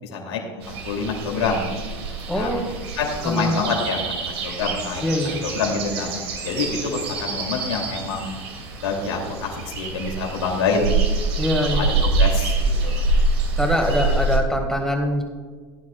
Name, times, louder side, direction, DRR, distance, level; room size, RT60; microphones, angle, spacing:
voice 1, 0.0-1.7 2.3-2.5 3.0-5.0 5.4-8.4 8.8-11.0 11.6-13.0, left 4 dB, 80° left, 0 dB, 2.8 m, -27 dB
sound 1, 0.6-14.4, right 3 dB, 75° right, 2.6 m, -25 dB
voice 2, 2.3-2.7 3.2-3.5 5.0-5.4 11.4-11.9 13.6-15.2, left 1 dB, 5° left, 1 dB, 1.9 m, -23 dB
17.5 x 9.6 x 2.4 m, 1.6 s
hypercardioid pair, 85°, 14 cm